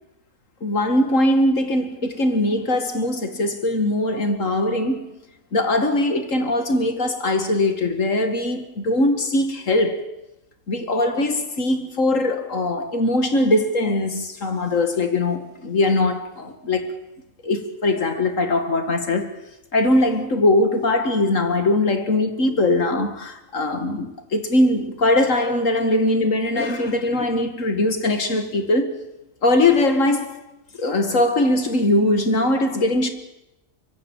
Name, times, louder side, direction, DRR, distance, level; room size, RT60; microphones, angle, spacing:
voice 1, 0.6-5.1 5.5-10.0 10.7-17.0 17.4-19.4 19.7-29.0 29.4-30.4 30.8-33.1, left 2 dB, 70° left, 2.6 m, -21 dB
24.0 x 24.0 x 7.4 m
omnidirectional pair, 1.4 m